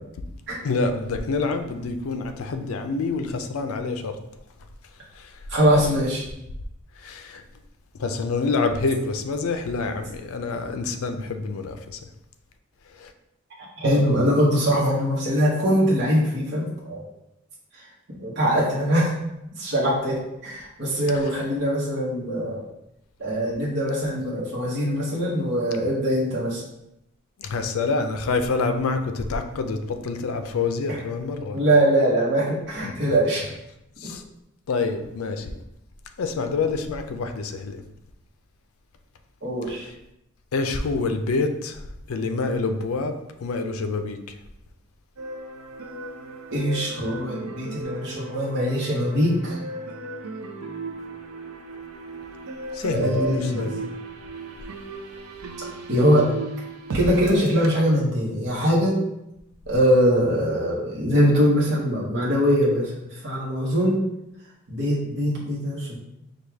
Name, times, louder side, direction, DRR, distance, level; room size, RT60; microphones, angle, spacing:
voice 1, 0.6-4.2 7.0-7.4 8.0-11.8 13.0-13.1 27.4-31.6 32.8-32.9 34.0-34.2 34.7-35.6 36.2-37.8 40.5-41.8 42.1-44.2 52.8-53.8, left 3 dB, 80° left, 7 dB, 0.4 m, -27 dB
voice 2, 5.5-6.2 13.6-17.0 18.2-19.1 19.6-22.6 23.2-26.6 30.9-31.0 31.5-33.5 39.4-39.9 46.5-49.6 52.9-53.7 55.9-56.3 56.9-59.0 59.7-62.9 63.2-64.0 64.7-66.0, equal, 50° right, -5 dB, 0.9 m, -22 dB
sound 1, 45.2-57.7, right 2 dB, 85° right, 0.5 m, -36 dB
4.7 x 2.3 x 3.4 m, 0.86 s
head